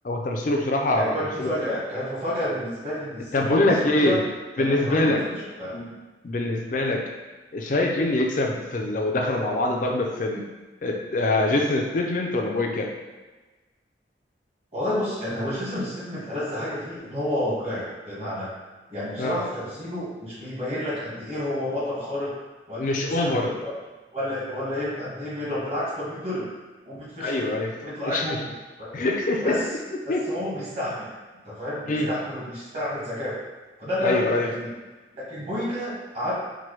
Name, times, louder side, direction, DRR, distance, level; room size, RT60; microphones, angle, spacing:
voice 1, 0.0-1.5 3.3-4.2 4.6-5.2 5.7-5.9 6.2-7.0 7.5-10.4 10.8-12.9 19.2-19.4 22.8-23.5 27.2-27.8 28.0-28.4 28.9-29.6 30.1-30.2 31.9-32.1 34.0-34.5, left 2 dB, 45° left, 1 dB, 0.4 m, -24 dB
voice 2, 1.0-4.2 4.7-5.7 14.7-18.5 18.9-22.3 22.7-23.7 24.1-26.5 26.8-27.4 27.8-28.5 28.8-29.0 29.4-29.7 30.3-31.1 31.4-33.4 33.8-34.7 35.1-36.3, left 1 dB, 35° right, -9 dB, 1.4 m, -30 dB
4.5 x 2.2 x 3.1 m, 1.2 s
head